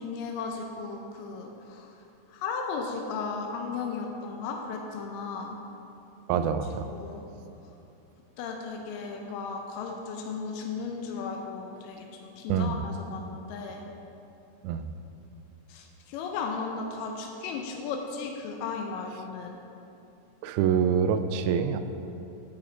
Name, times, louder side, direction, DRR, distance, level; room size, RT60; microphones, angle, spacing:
voice 1, 0.0-1.9 2.3-5.6 6.3-6.4 6.9-7.3 8.4-13.8 15.7-19.6, left 5 dB, 75° left, 2 dB, 2.2 m, -35 dB
voice 2, 6.3-6.9 12.5-12.8 14.6-14.9 20.4-21.8, right 7 dB, 90° right, 9 dB, 2.4 m, -26 dB
10.0 x 9.1 x 3.9 m, 2.8 s
omnidirectional pair, 4.2 m